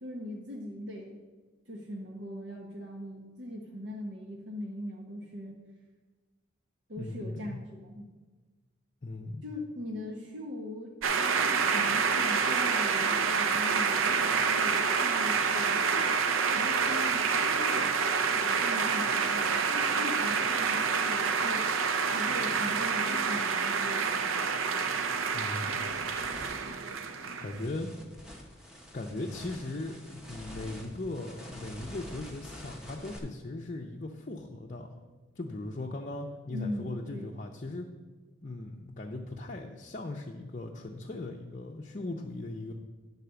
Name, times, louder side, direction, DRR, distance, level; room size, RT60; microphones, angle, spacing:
voice 1, 0.0-1.2 1.7-5.5 6.9-8.1 9.4-21.7 22.0-24.6 36.5-37.3, left 1 dB, 65° right, -1 dB, 0.9 m, -41 dB
voice 2, 7.0-7.6 9.0-9.4 25.3-25.8 27.4-27.9 28.9-35.0 35.4-37.9 38.4-42.7, left 2 dB, 35° left, 0 dB, 0.5 m, -38 dB
sound 1, 11.0-27.7, right 5 dB, 85° right, 0.6 m, -28 dB
sound 2, 24.3-24.5 25.0-33.2, equal, 5° right, 1.0 m, -48 dB
9.7 x 4.1 x 6.8 m, 1.4 s
head